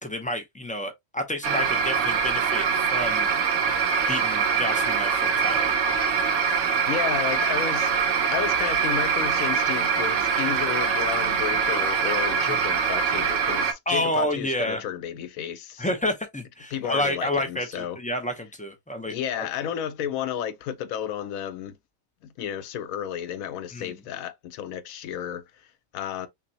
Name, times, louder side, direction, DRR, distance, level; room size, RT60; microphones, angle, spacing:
voice 1, 0.0-3.3 4.1-5.7 12.5-12.6 13.9-14.8 15.8-19.5 23.7-24.0, left 1 dB, 15° left, 0.3 m, -29 dB
sound 1, 1.4-13.7, right 6 dB, 70° right, 1.0 m, -24 dB
voice 2, 6.8-7.9 8.3-15.9 16.7-18.0 19.1-21.8 22.2-25.4 25.9-26.3, left 9 dB, 90° left, 1.0 m, -32 dB
5.7 x 2.1 x 2.7 m
omnidirectional pair, 1.4 m